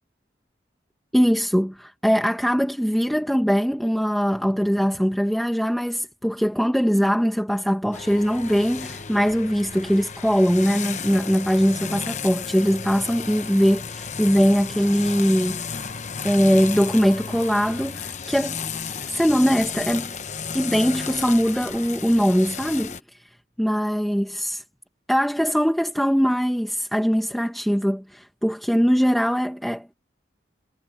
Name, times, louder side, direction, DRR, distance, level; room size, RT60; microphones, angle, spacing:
voice 1, 1.1-15.7 16.2-18.6 19.1-20.1 20.5-23.3 23.6-24.6 25.1-29.9, equal, ahead, 1.3 m, -21 dB
sound 1, 7.9-23.0, left 6 dB, 40° left, 1.0 m, -33 dB
head